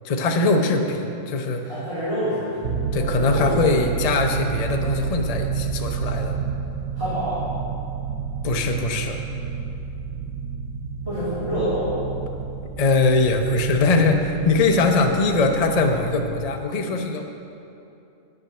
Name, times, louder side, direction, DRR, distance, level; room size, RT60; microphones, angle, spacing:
voice 1, 0.0-1.7 2.9-6.4 8.4-9.2 12.8-17.2, left 3 dB, 45° left, 4 dB, 0.4 m, -21 dB
voice 2, 1.7-2.7 3.0-3.8 6.9-7.4 11.0-11.9, equal, 20° right, -13 dB, 2.6 m, -27 dB
sound 1, 2.6-16.4, right 6 dB, 90° right, 1.1 m, -30 dB
9.9 x 6.1 x 6.6 m, 2.8 s
omnidirectional pair, 1.5 m